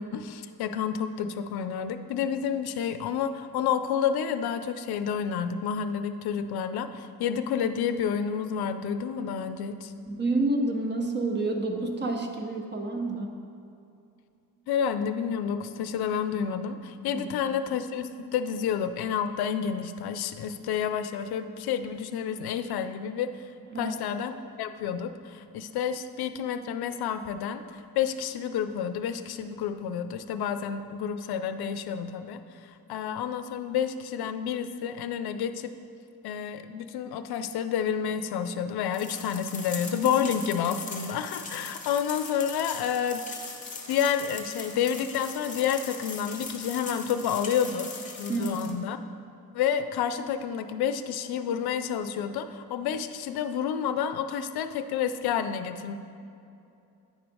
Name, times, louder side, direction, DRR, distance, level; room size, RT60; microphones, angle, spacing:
voice 1, 0.0-9.9 14.7-23.5 23.8-35.7 36.2-43.2 43.9-47.9 48.2-49.0 49.5-56.0, left 8 dB, 85° left, 10 dB, 0.5 m, -29 dB
voice 2, 10.1-13.4 17.1-17.3 23.7-24.0 39.9-40.1 48.3-48.8, right 2 dB, 30° right, 3 dB, 0.7 m, -29 dB
sound 1, 38.9-48.7, left 4 dB, 20° left, 0.8 m, -40 dB
9.4 x 4.7 x 5.2 m, 2.6 s
wide cardioid pair, 175°, 37 cm